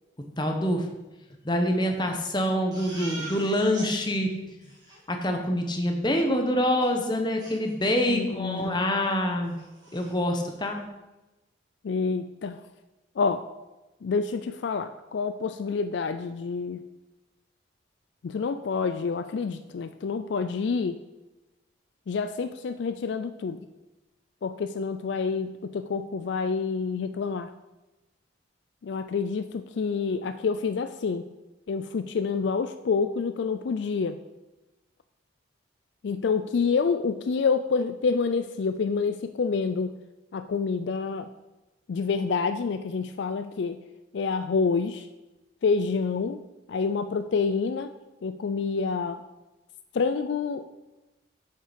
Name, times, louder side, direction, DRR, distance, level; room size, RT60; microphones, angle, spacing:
voice 1, 0.4-0.9 1.4-4.3 5.1-9.6 9.9-10.8, equal, 25° left, 3 dB, 1.0 m, -26 dB
Crying sobbing, 2.7-3.9 4.3-4.4 4.6-5.0 6.8-6.9 7.4-8.2 8.5-8.7 9.0-9.1 9.5-10.2, right 2 dB, 20° right, 2.1 m, -43 dB
voice 2, 8.1-8.8 11.8-12.6 13.2-13.5 14.0-16.8 18.2-21.0 22.1-23.7 24.4-27.5 28.8-31.3 31.7-34.2 36.0-40.0 40.3-41.3 41.9-43.8 44.1-45.1 45.6-46.4 46.7-47.9 48.2-49.2 49.9-50.6, left 5 dB, 65° left, 10 dB, 0.4 m, -28 dB
7.6 x 6.5 x 5.1 m, 1.1 s
head